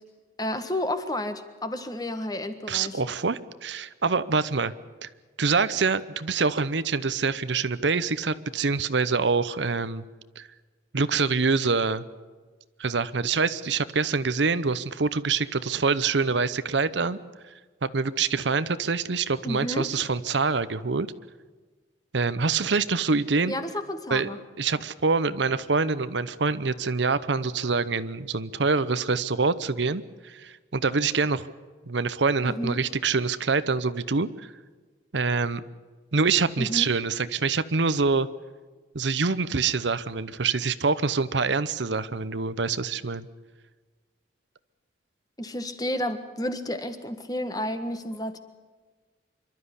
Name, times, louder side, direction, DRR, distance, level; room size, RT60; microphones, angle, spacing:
voice 1, 0.4-3.0 19.4-19.9 23.5-24.4 32.4-32.8 36.6-36.9 45.4-48.4, left 1 dB, 20° left, 9 dB, 1.5 m, -31 dB
voice 2, 2.7-4.7 5.0-5.1 5.4-10.0 10.4-10.5 10.9-12.0 12.8-17.2 17.8-21.1 22.1-23.5 24.1-24.3 24.6-31.5 31.9-34.5 35.1-35.6 36.1-38.3 38.9-43.3, right 4 dB, 75° right, 15 dB, 0.8 m, -25 dB
26.5 x 12.5 x 9.8 m, 1.4 s
head